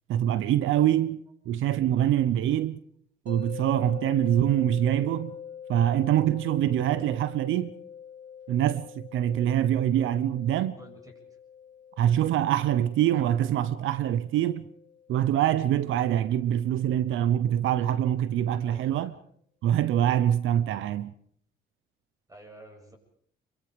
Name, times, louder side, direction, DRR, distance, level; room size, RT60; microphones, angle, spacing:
voice 1, 0.1-2.8 3.3-5.4 5.7-7.7 8.5-10.8 12.0-14.7 15.1-19.1 19.6-21.1, right 11 dB, 80° right, 0.9 m, -25 dB
sound 1, 3.3-16.3, left 8 dB, 40° left, 5.9 m, -45 dB
voice 2, 10.8-11.1 18.6-19.1 22.3-23.0, right 1 dB, 15° right, 7.7 m, -50 dB
26.5 x 23.5 x 5.2 m
cardioid pair, 90°, 20 cm